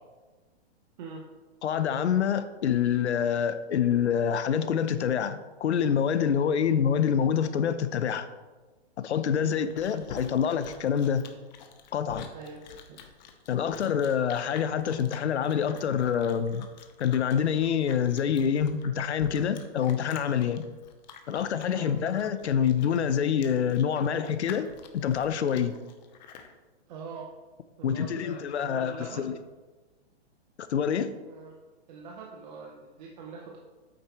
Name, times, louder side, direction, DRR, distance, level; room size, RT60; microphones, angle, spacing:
voice 1, 1.6-8.3 9.0-11.3 11.9-12.3 13.5-16.7 17.0-20.7 21.3-25.8 27.8-29.3 30.7-31.1, left 8 dB, 90° left, 0.8 m, -26 dB
Chewing mastication, 9.3-26.5, left 7 dB, 40° left, 1.0 m, -48 dB
voice 2, 9.4-9.8 12.3-12.6 12.9-13.0 21.7-21.9 26.9-27.3 27.8-29.3 31.3-31.6 31.9-33.6, right 4 dB, 40° right, 1.0 m, -43 dB
8.8 x 8.2 x 3.2 m
hypercardioid pair, 155°, 33 cm